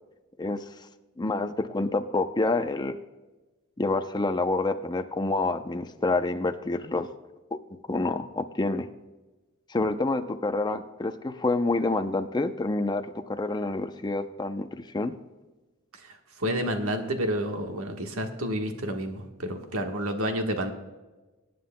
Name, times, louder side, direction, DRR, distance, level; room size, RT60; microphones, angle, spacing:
voice 1, 1.2-3.0 3.8-7.1 7.7-8.9 9.7-15.2, left 2 dB, 20° left, 8 dB, 0.5 m, -28 dB
voice 2, 16.4-20.7, equal, 75° right, 4 dB, 1.3 m, -29 dB
23.0 x 9.3 x 2.2 m, 1.2 s
head